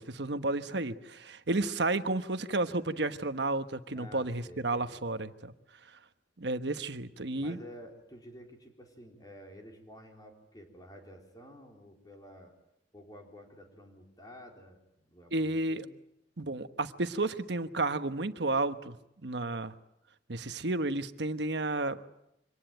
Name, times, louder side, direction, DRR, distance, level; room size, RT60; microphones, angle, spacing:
voice 1, 0.0-5.5 6.4-7.6 15.3-15.8 16.4-19.0 19.2-19.7 20.3-22.1, right 2 dB, 65° right, 10 dB, 1.2 m, -32 dB
voice 2, 3.9-5.0 7.4-12.5 12.9-14.8 15.1-15.9, equal, 20° left, 2 dB, 4.2 m, -51 dB
25.0 x 18.5 x 9.1 m, 0.83 s
head